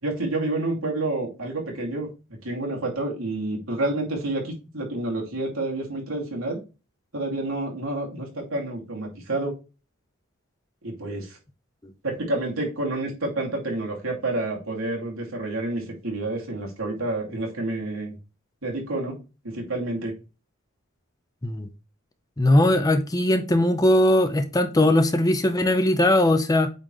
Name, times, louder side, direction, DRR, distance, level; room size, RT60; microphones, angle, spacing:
voice 1, 0.0-2.1 2.4-6.6 7.1-9.5 10.8-11.4 12.0-18.1 18.6-19.2 19.4-20.1, right 2 dB, 85° right, 2.5 m, -29 dB
voice 2, 22.4-26.7, left 1 dB, 15° left, 0.6 m, -20 dB
8.7 x 4.1 x 3.1 m
head